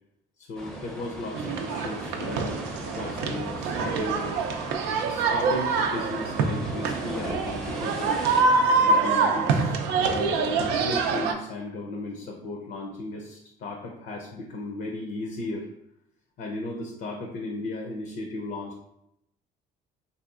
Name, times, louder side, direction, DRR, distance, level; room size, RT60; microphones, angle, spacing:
voice 1, 0.4-4.4 5.0-8.2 8.8-15.7 16.4-18.8, left 2 dB, 70° left, 1 dB, 0.6 m, -36 dB
sound 1, 0.6-8.4, equal, 5° left, 0.5 m, -39 dB
sound 2, 1.3-11.3, right 4 dB, 90° right, 0.4 m, -25 dB
3.3 x 2.7 x 2.4 m, 0.79 s
cardioid pair, 110°, 17 cm